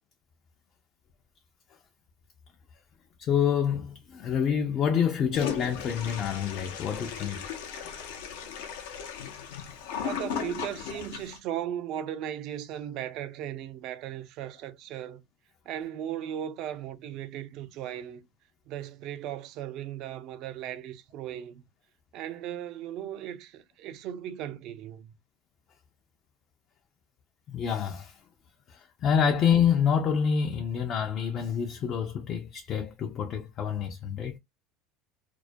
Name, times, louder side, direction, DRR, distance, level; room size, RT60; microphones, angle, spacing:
voice 1, 3.2-7.4 27.5-28.2 28.7-34.4, left 7 dB, 40° left, 0.4 m, -27 dB
Toilet flush, 5.3-11.4, left 8 dB, 85° left, 0.6 m, -37 dB
voice 2, 10.0-15.2 15.6-18.3 18.7-21.7 22.1-25.1, right 10 dB, 55° right, 0.5 m, -37 dB
2.3 x 2.1 x 2.5 m
supercardioid pair, 130°, 0 cm